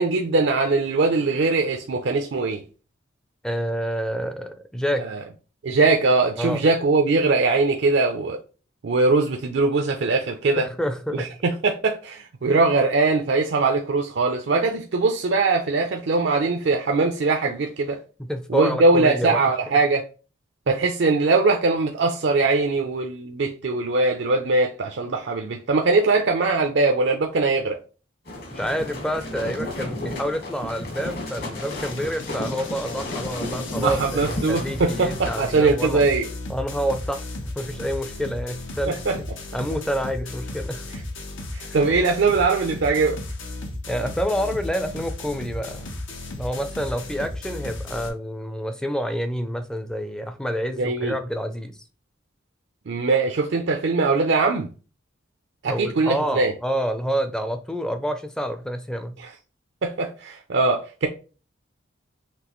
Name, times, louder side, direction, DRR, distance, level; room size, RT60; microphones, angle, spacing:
voice 1, 0.0-2.6 4.9-5.2 5.6-8.4 8.8-10.7 11.1-18.0 18.5-20.0 20.7-27.8 33.8-36.3 38.9-39.2 40.9-41.0 41.5-43.2 50.8-51.1 52.9-54.7 55.6-56.5 59.2-59.3 59.8-61.1, right 3 dB, 65° right, 0.5 m, -21 dB
voice 2, 3.4-5.1 6.4-6.6 10.6-11.3 18.2-19.4 28.5-36.0 36.5-39.0 39.5-40.9 41.6-41.8 43.9-45.9 46.4-51.8 55.7-59.2, equal, 5° left, 0.4 m, -28 dB
sound 1, 28.3-35.4, left 1 dB, 50° left, 1.3 m, -33 dB
sound 2, 31.5-48.1, left 2 dB, 80° left, 0.9 m, -35 dB
5.9 x 2.9 x 3.0 m
head